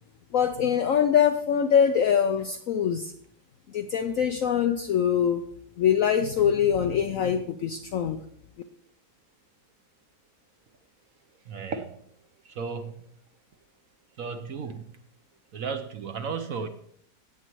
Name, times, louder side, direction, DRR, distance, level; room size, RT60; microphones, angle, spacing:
voice 1, 0.3-3.1 3.7-5.4 5.8-8.2, left 8 dB, 70° left, 7 dB, 0.8 m, -23 dB
voice 2, 11.5-12.0 12.5-12.9 14.2-14.8 15.5-16.7, right 5 dB, 60° right, 7 dB, 1.0 m, -34 dB
17.0 x 7.4 x 3.0 m, 0.66 s
omnidirectional pair, 1.9 m